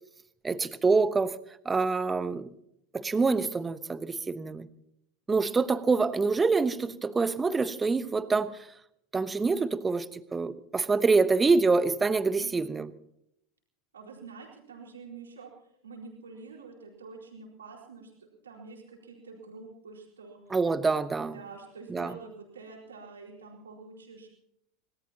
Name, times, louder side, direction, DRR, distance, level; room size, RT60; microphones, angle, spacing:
voice 1, 0.4-1.4 1.6-2.5 2.9-4.7 5.3-8.7 9.1-12.9 20.5-21.4 21.9-22.1, right 4 dB, 20° right, 1.1 m, -26 dB
voice 2, 13.9-15.5 15.8-20.6 21.3-24.3, right 4 dB, 80° right, 4.4 m, -47 dB
26.0 x 18.5 x 2.9 m
figure-of-eight pair, 80°, 0 cm